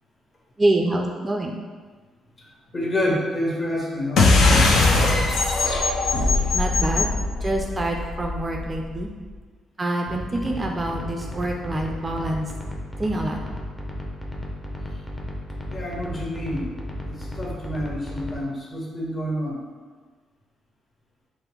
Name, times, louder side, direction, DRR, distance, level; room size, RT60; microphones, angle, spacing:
voice 1, 0.6-1.6 6.5-7.1 7.4-9.1 9.8-12.5 13.0-13.4, right 1 dB, 25° right, 1 dB, 0.4 m, -26 dB
voice 2, 2.7-4.6 15.7-16.7 17.0-19.6, left 1 dB, 35° left, -3 dB, 1.3 m, -28 dB
sound 1, 4.2-9.1, left 3 dB, 75° left, 0.7 m, -20 dB
sound 2, 10.1-18.4, left 1 dB, 15° left, 0.7 m, -34 dB
5.0 x 2.1 x 4.4 m, 1.4 s
cardioid pair, 90°, 0 cm